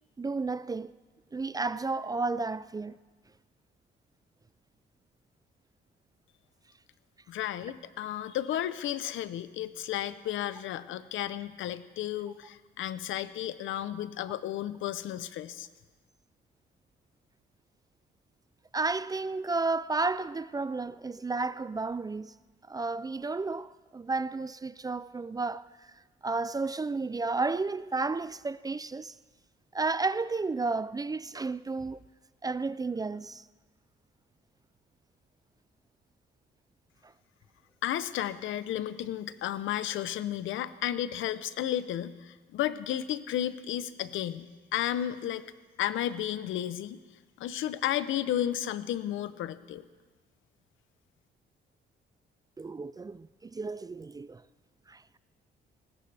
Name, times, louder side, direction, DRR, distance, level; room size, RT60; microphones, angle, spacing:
voice 1, 0.2-0.9 1.3-3.0 18.7-22.3 22.7-25.9 26.2-29.1 29.7-32.0 32.4-33.4 37.0-37.1 52.6-54.4 54.9-55.0, right 3 dB, 20° right, 0.4 m, -32 dB
voice 2, 7.3-15.7 37.8-44.5 44.7-45.4 45.8-47.0 47.4-49.8, left 11 dB, 80° left, 0.8 m, -33 dB
20.0 x 18.5 x 3.4 m
cardioid pair, 90°, 20 cm